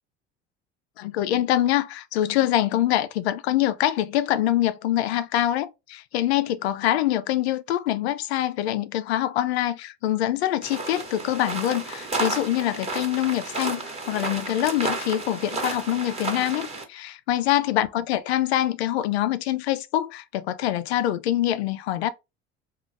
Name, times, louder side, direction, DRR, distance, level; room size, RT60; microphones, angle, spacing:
voice 1, 1.0-22.1, left 13 dB, 75° left, 0.5 m, -25 dB
sound 1, 10.6-16.8, right 3 dB, 20° right, 1.2 m, -32 dB
3.0 x 2.4 x 3.9 m
hypercardioid pair, 65°, 32 cm